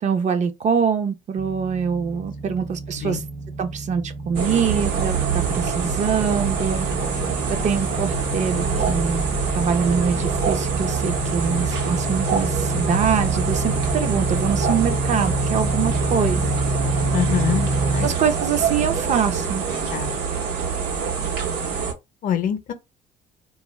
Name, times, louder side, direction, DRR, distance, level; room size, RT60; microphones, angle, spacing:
voice 1, 0.0-3.2 3.6-6.9 7.5-9.3 9.5-16.5 18.0-19.6, right 6 dB, 45° right, 0.5 m, -24 dB
sound 1, 1.4-18.1, right 1 dB, 5° left, 0.5 m, -28 dB
sound 2, 4.3-21.9, right 6 dB, 80° right, 1.0 m, -25 dB
voice 2, 17.1-18.1 19.9-20.2 22.2-22.7, left 9 dB, 55° left, 0.6 m, -25 dB
2.3 x 2.1 x 3.1 m
cardioid pair, 110°, 17 cm